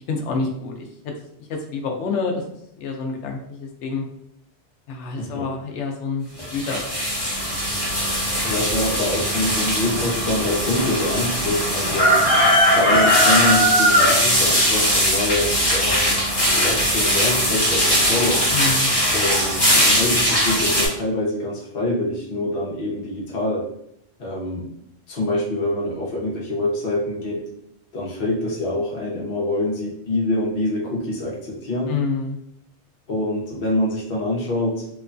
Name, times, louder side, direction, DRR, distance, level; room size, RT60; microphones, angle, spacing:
voice 1, 0.1-0.7 1.0-1.1 1.5-2.4 2.8-4.0 4.9-6.8 18.5-18.9 31.9-32.4, left 4 dB, 85° left, 2 dB, 0.9 m, -27 dB
voice 2, 5.2-5.6 8.4-12.2 12.7-16.2 16.6-18.5 19.1-19.7 19.9-23.7 24.2-24.7 25.1-27.5 27.9-31.9 33.1-34.9, left 1 dB, 55° left, -4 dB, 1.0 m, -25 dB
sound 1, 6.4-20.9, equal, 25° left, 0.9 m, -19 dB
3.0 x 2.2 x 2.5 m, 0.75 s
omnidirectional pair, 1.2 m